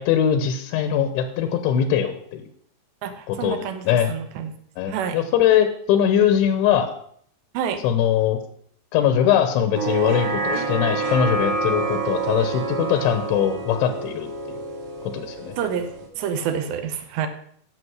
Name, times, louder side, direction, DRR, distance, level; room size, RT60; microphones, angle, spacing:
voice 1, 0.0-2.4 3.3-4.1 4.8-6.9 7.8-8.4 8.9-14.6 15.1-15.5, left 9 dB, 85° left, 8 dB, 3.2 m, -21 dB
voice 2, 3.0-4.5 4.9-5.2 7.5-7.8 15.6-15.9 16.2-17.3, right 8 dB, 75° right, 8 dB, 3.0 m, -28 dB
sound 1, 9.7-16.1, right 3 dB, 55° right, 3.9 m, -27 dB
11.0 x 7.0 x 6.2 m, 0.64 s
omnidirectional pair, 5.3 m